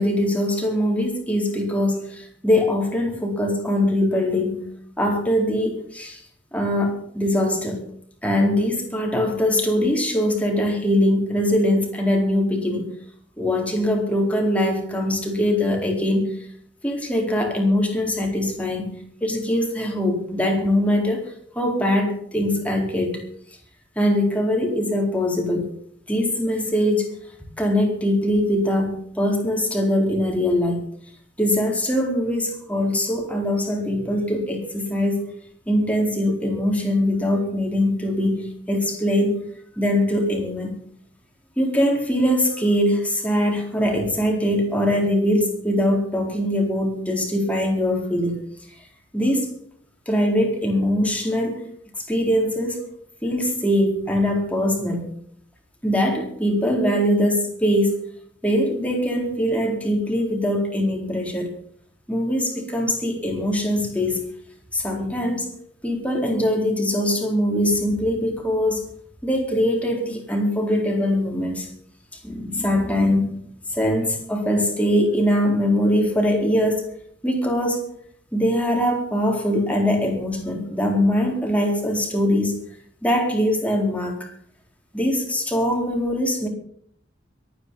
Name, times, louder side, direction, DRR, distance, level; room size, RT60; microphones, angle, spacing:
voice 1, 0.0-6.2 6.5-7.9 8.2-12.9 13.4-16.4 16.8-21.2 21.6-23.2 24.0-25.7 26.1-27.1 27.6-30.9 31.4-35.2 35.7-39.4 39.8-40.8 41.6-48.4 49.1-49.5 50.1-51.6 52.0-52.8 53.2-55.1 55.8-58.0 58.4-61.5 62.1-64.3 64.7-65.5 65.8-68.9 69.2-71.7 72.2-73.4 73.7-76.9 77.2-77.8 78.3-82.5 83.0-84.3 84.9-86.5, left 1 dB, 5° left, 1 dB, 4.2 m, -22 dB
22.5 x 9.7 x 5.6 m, 0.65 s
head